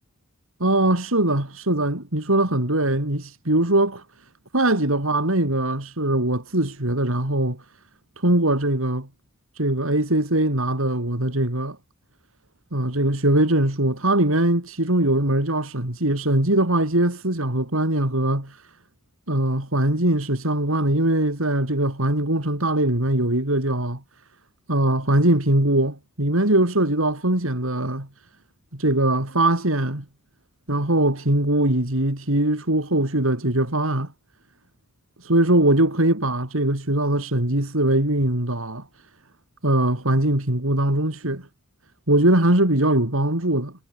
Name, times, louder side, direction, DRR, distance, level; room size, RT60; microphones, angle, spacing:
voice 1, 0.6-4.0 4.5-7.6 8.2-9.1 9.6-11.8 12.7-18.7 19.3-24.0 24.7-28.1 28.7-30.0 30.7-34.1 35.2-38.8 39.6-41.5 42.1-43.7, right 1 dB, 70° right, 4.1 m, -21 dB
head